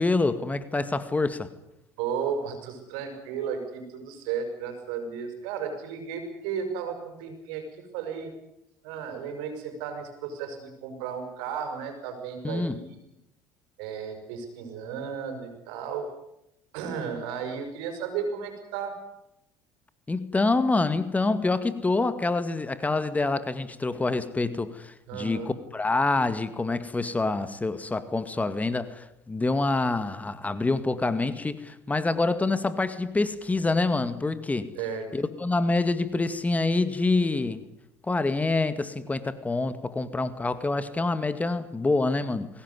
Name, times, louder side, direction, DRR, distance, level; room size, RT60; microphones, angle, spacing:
voice 1, 0.0-1.5 12.4-12.8 20.1-34.7 35.1-37.6 38.1-42.5, left 3 dB, 20° left, 2.0 m, -26 dB
voice 2, 2.0-7.6 7.9-8.3 8.8-13.0 13.8-16.1 16.7-19.0 25.1-25.5 34.7-35.1, right 6 dB, 75° right, 6.3 m, -34 dB
22.5 x 18.5 x 9.8 m
hypercardioid pair, 75°, 8 cm